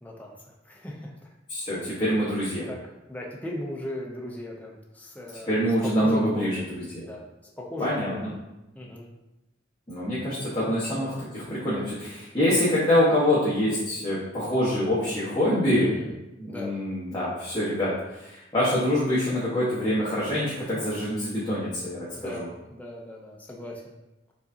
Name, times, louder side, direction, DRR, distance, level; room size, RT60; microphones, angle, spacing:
voice 1, 0.0-1.3 2.7-5.6 5.8-6.6 7.0-7.2 7.6-8.3 8.7-9.1 10.7-11.0 15.7-16.1 16.5-16.8 22.1-22.4 22.7-24.0, left 1 dB, 10° left, -2 dB, 0.5 m, -38 dB
voice 2, 1.5-2.7 5.3-7.1 7.8-8.3 9.9-16.0 16.4-22.5, left 1 dB, 25° left, -11 dB, 1.2 m, -25 dB
4.8 x 3.9 x 2.7 m, 0.96 s
head